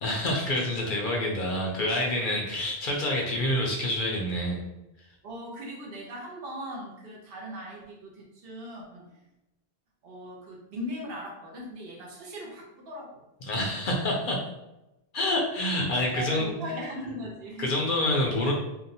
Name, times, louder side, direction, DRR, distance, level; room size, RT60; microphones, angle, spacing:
voice 1, 0.0-4.6 13.4-14.4 15.1-16.5 17.6-18.5, left 1 dB, 60° left, -1 dB, 0.6 m, -27 dB
voice 2, 5.2-9.1 10.0-13.1 16.1-17.7, equal, 70° right, -2 dB, 0.9 m, -39 dB
2.6 x 2.0 x 2.6 m, 0.94 s
omnidirectional pair, 1.1 m